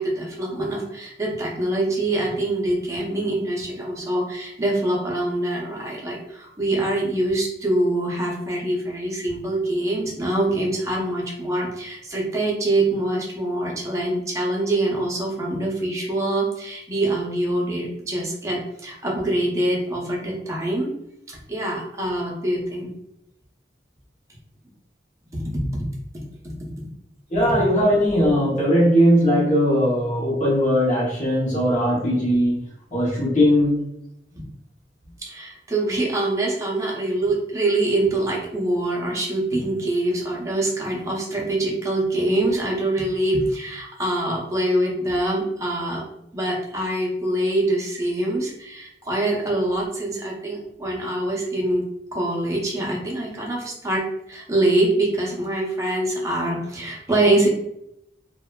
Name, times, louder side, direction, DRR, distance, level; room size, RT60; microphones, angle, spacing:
voice 1, 0.0-20.9 21.3-22.9 25.3-25.9 26.4-26.9 35.2-46.0 46.3-51.9 52.1-57.5, right 1 dB, 15° right, -3 dB, 0.6 m, -24 dB
voice 2, 27.3-32.6 32.9-33.8, equal, 40° left, -6 dB, 0.8 m, -19 dB
2.6 x 2.2 x 2.2 m, 0.80 s
head